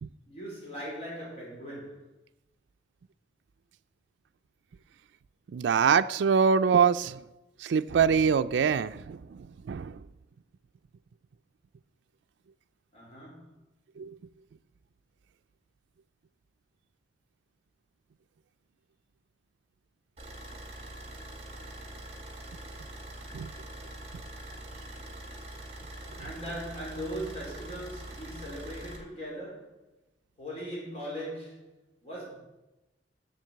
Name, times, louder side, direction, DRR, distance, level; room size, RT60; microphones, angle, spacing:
voice 1, 0.2-2.1 12.9-13.5 26.2-29.8 30.4-32.3, equal, 35° left, 4.0 m, -39 dB
voice 2, 5.5-7.2 7.6-10.0 14.0-14.2 23.3-23.5, right 6 dB, 80° right, 0.4 m, -24 dB
Car / Idling, 20.2-29.0, right 1 dB, 35° right, 2.1 m, -43 dB
7.6 x 7.2 x 7.8 m
head